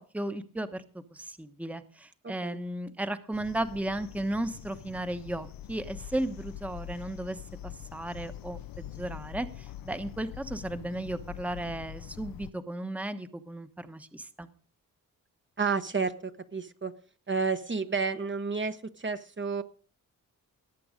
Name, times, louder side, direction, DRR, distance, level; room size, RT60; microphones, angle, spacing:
voice 1, 0.0-14.5, right 1 dB, 5° right, 10 dB, 1.1 m, -35 dB
voice 2, 2.2-2.6 15.6-16.9 17.3-19.6, right 4 dB, 35° right, 8 dB, 1.1 m, -31 dB
sound 1, 3.3-12.5, left 12 dB, 80° left, 0.5 m, -44 dB
18.0 x 7.7 x 5.1 m, 0.41 s
cardioid pair, 70°, 34 cm